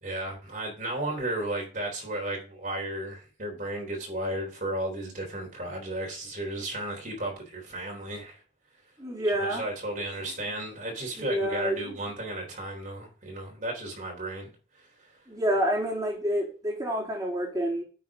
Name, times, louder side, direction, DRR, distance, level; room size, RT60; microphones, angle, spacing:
voice 1, 0.0-8.4 9.4-15.1, right 1 dB, 45° right, 0 dB, 3.7 m, -34 dB
voice 2, 9.0-9.7 11.2-12.0 15.3-17.8, equal, 20° right, -4 dB, 3.6 m, -28 dB
10.0 x 7.6 x 3.7 m, 0.36 s
head